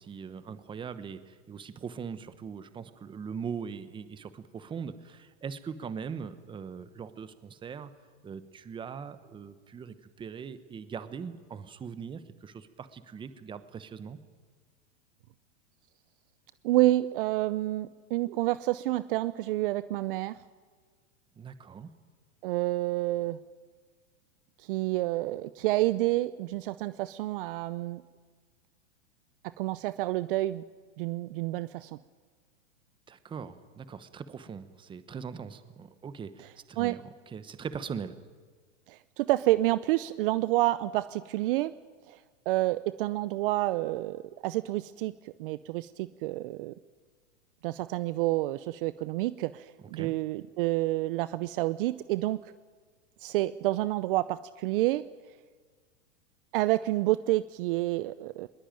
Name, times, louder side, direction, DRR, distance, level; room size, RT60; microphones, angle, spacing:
voice 1, 0.0-7.9 8.2-14.2 21.4-21.9 33.1-38.2 49.9-50.1, right 6 dB, 15° right, 12 dB, 1.0 m, -41 dB
voice 2, 16.6-20.4 22.4-23.4 24.6-28.0 29.4-30.6 31.0-32.0 36.8-37.0 38.9-41.7 42.1-42.2 42.5-46.7 47.6-52.5 53.2-55.0 56.5-58.5, right 17 dB, 45° right, 15 dB, 0.6 m, -29 dB
21.0 x 20.0 x 9.1 m, 1.5 s
hypercardioid pair, 140°, 38 cm